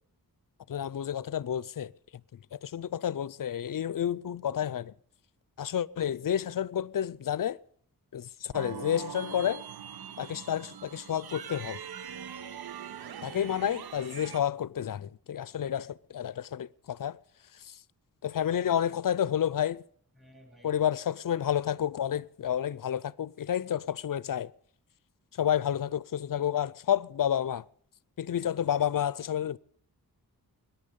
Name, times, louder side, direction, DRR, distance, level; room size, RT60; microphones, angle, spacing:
voice 1, 0.7-1.9 2.5-4.9 5.6-7.6 8.1-9.6 10.2-11.8 13.2-17.2 17.6-17.8 18.2-19.8 20.6-24.5 25.4-27.6 28.2-29.6, left 9 dB, 65° left, 0.5 m, -30 dB
sound 1, 8.5-14.4, right 9 dB, 75° right, 0.7 m, -42 dB
voice 2, 10.3-10.7 12.4-13.1 16.3-16.4 20.1-20.7, left 1 dB, ahead, 2.9 m, -60 dB
23.5 x 10.5 x 5.3 m
wide cardioid pair, 125°, 37 cm